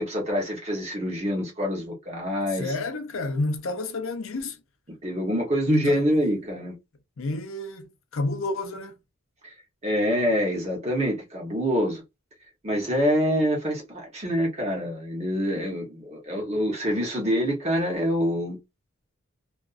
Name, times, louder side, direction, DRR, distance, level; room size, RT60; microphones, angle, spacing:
voice 1, 0.0-2.7 5.0-6.7 9.4-9.5 9.8-12.0 12.6-18.6, equal, 30° right, 0.8 m, -26 dB
voice 2, 2.5-4.6 5.7-6.1 7.2-8.9, left 2 dB, 65° left, 0.5 m, -29 dB
2.4 x 2.3 x 2.4 m
head